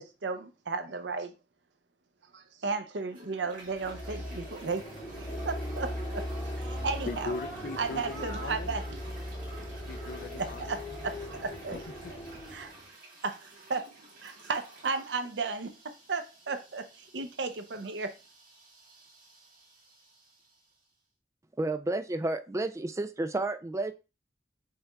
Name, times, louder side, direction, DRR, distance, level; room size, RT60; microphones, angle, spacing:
voice 1, 0.0-1.3 2.3-4.9 5.2-6.3 6.6-7.4 7.8-9.2 10.3-11.8 12.1-12.2 12.5-12.7 13.2-18.2, right 4 dB, 80° right, 0.6 m, -35 dB
Toilet flush, 2.9-20.9, right 2 dB, 55° right, 2.0 m, -53 dB
sound 1, 3.5-12.9, equal, 20° left, 2.8 m, -38 dB
voice 2, 7.1-8.7 9.6-10.8 11.7-12.1, left 4 dB, 55° left, 0.4 m, -40 dB
voice 3, 21.6-23.9, right 2 dB, 15° right, 0.4 m, -31 dB
5.6 x 4.1 x 2.3 m
head